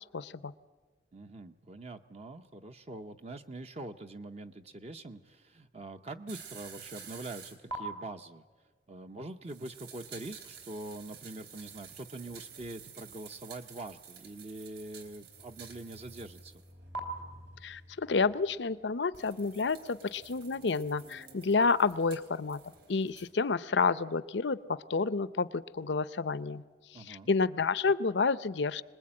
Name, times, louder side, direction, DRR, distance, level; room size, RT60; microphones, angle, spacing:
voice 1, 0.1-0.5 17.6-22.6 22.9-26.6 26.9-28.8, left 4 dB, 80° left, 16 dB, 0.7 m, -30 dB
voice 2, 1.1-8.5 8.9-16.5 26.9-27.3, right 2 dB, 35° right, 7 dB, 0.7 m, -44 dB
sound 1, 6.3-7.8 9.5-16.7 16.9-17.0 19.1-23.3, right 5 dB, 60° right, 3.3 m, -49 dB
sound 2, 14.9-19.7 20.3-22.5, equal, 85° right, 4.1 m, -56 dB
25.5 x 20.5 x 8.7 m, 1.4 s
head